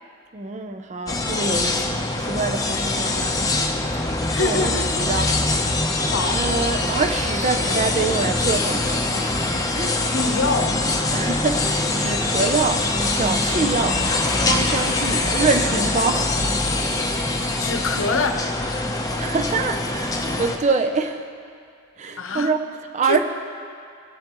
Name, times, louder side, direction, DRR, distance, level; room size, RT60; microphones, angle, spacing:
voice 1, 0.3-3.5 4.4-5.4 6.3-10.4 11.1-12.8 13.2-14.0 14.5-16.5 16.8-16.9 19.2-21.2 22.0-22.6 22.9-23.2, right 4 dB, 35° right, 6 dB, 0.5 m, -25 dB
sound 1, 1.1-20.6, left 2 dB, 15° left, 0.7 m, -23 dB
voice 2, 4.3-4.9 6.1-6.4 10.1-10.8 17.6-18.5 22.2-22.5 23.0-23.2, left 3 dB, 65° left, 6 dB, 0.8 m, -25 dB
21.0 x 7.0 x 3.0 m, 2.3 s
head